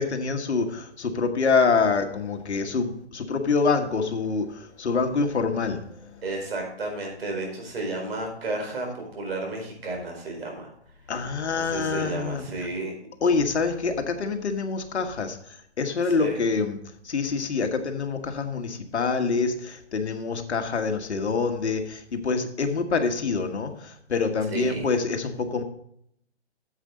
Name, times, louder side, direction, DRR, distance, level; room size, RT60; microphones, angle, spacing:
voice 1, 0.0-6.2 11.1-12.5 13.2-16.8 17.0-25.6, left 4 dB, 70° left, 6 dB, 1.5 m, -26 dB
voice 2, 6.2-10.7 11.5-12.9 16.0-16.4 24.5-24.9, right 2 dB, 60° right, 1 dB, 4.5 m, -32 dB
9.8 x 7.6 x 3.8 m, 0.70 s
hypercardioid pair, 155°, 34 cm